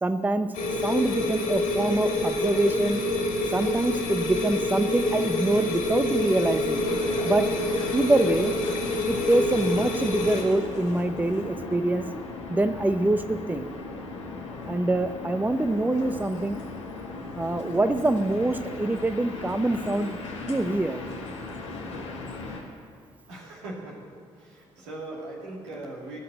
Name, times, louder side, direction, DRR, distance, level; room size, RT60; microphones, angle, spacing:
voice 1, 0.0-0.5 0.8-3.0 3.5-6.9 7.2-7.5 7.9-8.5 9.1-12.0 12.5-13.7 14.7-16.6 17.3-20.2 20.5-21.0, right 2 dB, 10° right, 10 dB, 0.7 m, -25 dB
sound 1, 0.5-10.4, left 1 dB, 65° left, 2.5 m, -27 dB
sound 2, 6.7-22.6, left 3 dB, 85° left, 1.3 m, -37 dB
voice 2, 23.3-24.0 24.3-26.2, right 2 dB, 80° right, -3 dB, 2.6 m, -39 dB
17.5 x 5.9 x 9.1 m, 2.3 s
figure-of-eight pair, 40°, 15 cm